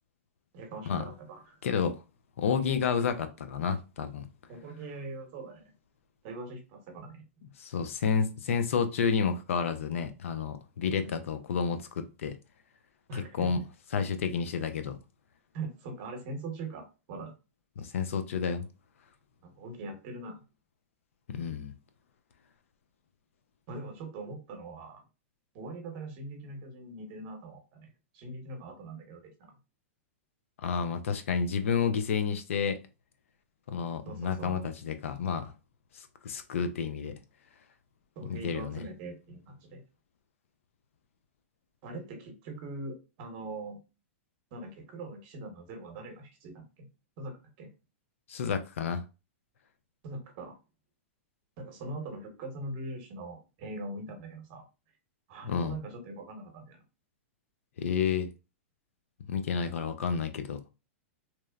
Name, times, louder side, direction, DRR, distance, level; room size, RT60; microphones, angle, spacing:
voice 1, 0.5-1.6 4.5-5.7 6.2-7.2 11.0-11.2 13.1-13.5 15.5-17.3 19.4-20.4 23.7-25.0 25.5-27.9 28.1-29.6 34.1-34.6 38.2-39.8 41.8-43.8 44.5-46.9 47.2-47.7 50.0-50.6 51.6-54.7 55.3-56.8, right 2 dB, 45° right, 0.9 m, -42 dB
voice 2, 1.6-2.0 2.4-4.3 7.6-12.4 13.1-13.6 13.9-15.0 17.8-18.7 21.3-21.7 30.6-32.8 33.7-35.5 35.9-37.1 38.3-38.8 48.3-49.0 55.5-55.8 57.8-58.3 59.3-60.6, left 6 dB, 80° left, 0.4 m, -30 dB
2.9 x 2.0 x 2.3 m
hypercardioid pair, 135°, 7 cm